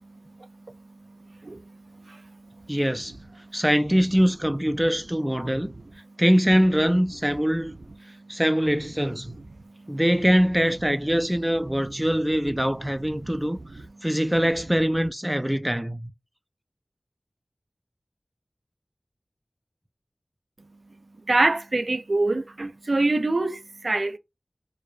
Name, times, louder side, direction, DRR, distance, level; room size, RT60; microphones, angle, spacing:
voice 1, 0.0-2.8 3.4-3.6 5.4-5.6 8.0-8.4 9.2-10.0 11.6-11.7 12.8-12.9 13.2-14.1 21.3-24.2, right 2 dB, 65° right, 0.5 m, -28 dB
voice 2, 2.7-3.1 3.5-5.7 6.2-7.8 8.3-9.4 9.9-13.6 14.0-16.1, equal, 10° right, 0.4 m, -23 dB
4.6 x 2.1 x 2.5 m
wide cardioid pair, 60°, 0 cm